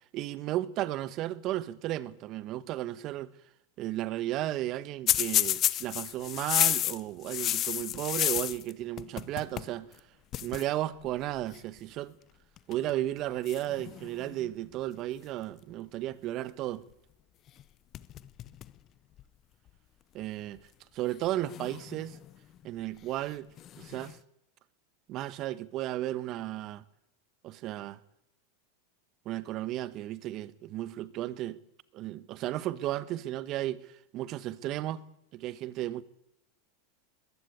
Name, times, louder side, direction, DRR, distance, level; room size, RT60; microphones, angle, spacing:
voice 1, 0.1-3.3 3.8-9.9 10.4-12.2 12.7-16.8 20.1-20.6 20.9-22.2 22.6-23.5 23.8-24.2 25.1-26.8 27.4-28.0 29.2-31.6 31.9-33.9 34.1-35.0 35.3-36.0, right 14 dB, 45° right, 1.2 m, -34 dB
sound 1, 5.1-8.7 9.0-9.7 10.0-10.1 10.3-10.6 11.5-11.8 12.6-12.9 13.5-14.5 17.5-17.6 17.9-18.8 19.2-19.3 20.2-20.3 21.4-22.3 23.6-24.1, left 12 dB, 40° left, 0.9 m, -31 dB
21.0 x 15.5 x 8.4 m
hypercardioid pair, 105°, 0 cm